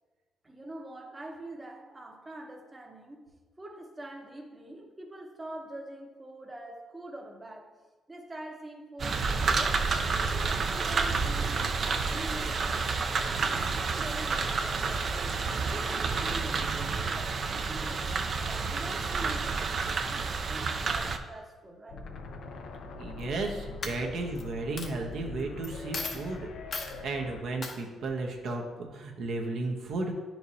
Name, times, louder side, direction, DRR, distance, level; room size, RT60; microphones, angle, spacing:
voice 1, 0.4-7.8 8.1-9.9 10.3-12.5 13.4-15.4 15.7-22.1, right 1 dB, 20° right, 2 dB, 0.8 m, -44 dB
sound 1, 9.0-21.2, right 4 dB, 45° right, 0.5 m, -29 dB
sound 2, 21.9-27.4, left 3 dB, 70° left, 0.6 m, -43 dB
voice 2, 23.0-26.5 26.8-30.1, right 3 dB, 70° right, 1 dB, 0.9 m, -34 dB
Coin (dropping), 23.2-23.5 23.8-24.4 24.8-24.9 25.6-25.7 25.9-26.2 26.7-26.9 27.6-27.8, left 4 dB, 50° left, 0.9 m, -36 dB
9.6 x 4.5 x 2.7 m, 1.3 s
cardioid pair, 90°, 0 cm